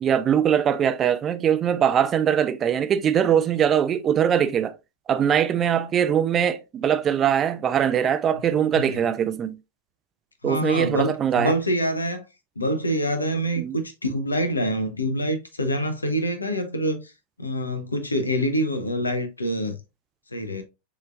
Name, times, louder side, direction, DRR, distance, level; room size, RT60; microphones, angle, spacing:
voice 1, 0.0-4.8 5.1-9.6 10.4-11.6 13.6-13.8, right 9 dB, 25° right, 0.5 m, -22 dB
voice 2, 10.4-12.2 12.6-17.1 17.4-19.8 20.3-20.6, equal, 80° left, 0.8 m, -26 dB
6.5 x 3.2 x 2.4 m
figure-of-eight pair, 90°, 0 cm